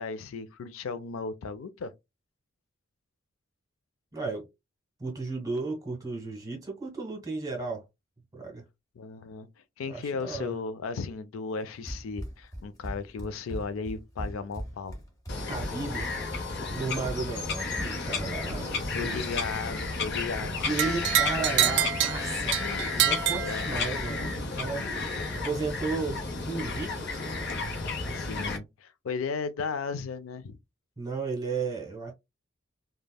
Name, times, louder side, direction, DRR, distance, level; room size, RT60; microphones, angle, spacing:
voice 1, 0.0-1.9 9.0-9.5 9.8-15.0 18.9-21.1 23.4-23.9 28.1-30.6, left 4 dB, 80° left, 0.4 m, -35 dB
voice 2, 4.1-4.4 5.0-7.8 8.3-8.6 9.9-10.5 15.5-16.1 16.7-19.2 20.6-27.3 31.0-32.1, right 4 dB, 20° right, 1.2 m, -34 dB
Run, 11.9-18.9, equal, 15° left, 1.0 m, -39 dB
Bird vocalization bird call bird song, 15.3-28.6, left 3 dB, 55° left, 0.8 m, -32 dB
sound 1, 20.8-24.2, right 10 dB, 60° right, 0.4 m, -27 dB
3.3 x 2.2 x 2.2 m
head